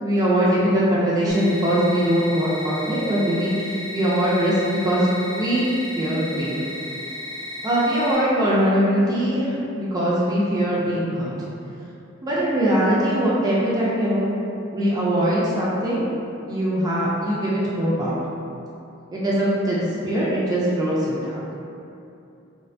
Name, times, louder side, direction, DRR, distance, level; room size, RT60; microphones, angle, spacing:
voice 1, 0.0-5.1 5.3-6.7 7.6-11.3 12.2-14.3 14.7-16.1 16.5-18.2 19.1-21.4, equal, 20° right, -7 dB, 0.3 m, -21 dB
sound 1, 1.3-8.1, left 1 dB, 35° left, 0.7 m, -34 dB
2.4 x 2.1 x 2.5 m, 2.7 s
head